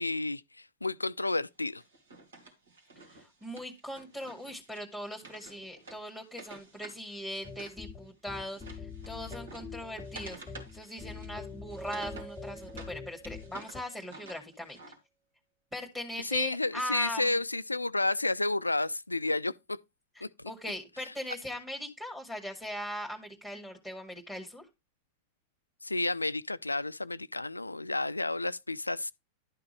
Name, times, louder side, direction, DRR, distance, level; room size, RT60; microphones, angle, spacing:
voice 1, 0.0-1.8 16.2-19.8 20.2-20.5 25.8-29.1, left 2 dB, 85° left, 0.3 m, -31 dB
Wood, 1.8-7.8 8.1-12.9 13.2-15.0, right 3 dB, 65° right, 2.5 m, -51 dB
voice 2, 3.4-8.8 9.1-10.4 10.7-14.8 15.7-17.4 20.2-24.6, equal, 5° right, 2.0 m, -40 dB
sound 1, 7.4-13.8, left 5 dB, 15° left, 0.7 m, -44 dB
Keyboard (musical), 11.8-14.2, right 4 dB, 35° right, 1.8 m, -49 dB
11.5 x 5.9 x 3.2 m
figure-of-eight pair, 90°, 0 cm